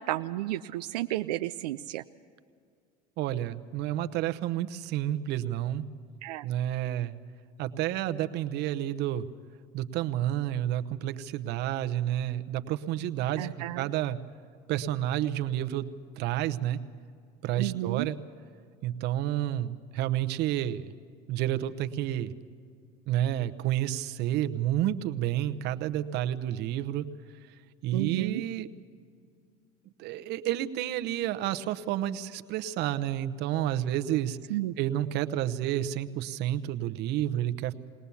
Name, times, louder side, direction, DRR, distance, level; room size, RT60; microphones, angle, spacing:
voice 1, 0.0-2.0 6.2-6.4 13.4-13.9 17.6-18.1 27.9-28.4 34.5-34.7, right 15 dB, 90° right, 8 dB, 0.4 m, -32 dB
voice 2, 3.2-5.8 6.4-7.2 7.6-9.2 9.7-13.5 13.8-14.2 14.7-15.9 16.2-16.8 17.4-18.2 18.8-20.9 21.3-22.3 23.1-27.0 27.8-28.7 30.0-34.4 34.8-37.7, right 12 dB, 60° right, 10 dB, 0.9 m, -30 dB
21.5 x 18.5 x 7.1 m, 2.2 s
supercardioid pair, 100°, 20 cm